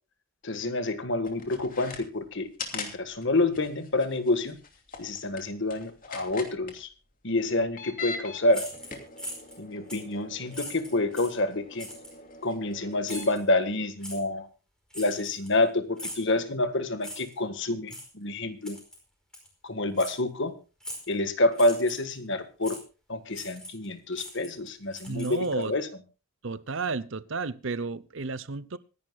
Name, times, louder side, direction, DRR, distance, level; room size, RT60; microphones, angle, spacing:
voice 1, 0.4-2.5 2.7-4.6 5.0-6.9 7.2-8.7 9.6-11.9 12.4-14.5 14.9-18.8 19.6-20.5 21.1-22.8 23.1-25.9, left 2 dB, 55° left, 1.6 m, -28 dB
sound 1, 1.2-2.0 2.6-2.9 3.2-3.3 3.5-6.7 7.6-8.4 8.7-13.4, left 4 dB, 40° left, 2.7 m, -42 dB
sound 2, 8.5-9.6 9.9-10.1 10.5-11.4 11.8-12.1 13.0-13.4 14.0-14.2 14.9-15.6 16.0-16.3 17.0-17.4 17.9-18.1 18.6-19.0 19.3-19.5 20.0-20.2 20.8-21.1 21.5-22.1 22.6-22.8 23.3-23.9 24.1-25.6, equal, 5° left, 4.7 m, -41 dB
voice 2, 25.1-25.7 26.4-28.8, right 3 dB, 55° right, 0.7 m, -32 dB
25.5 x 11.0 x 2.4 m
head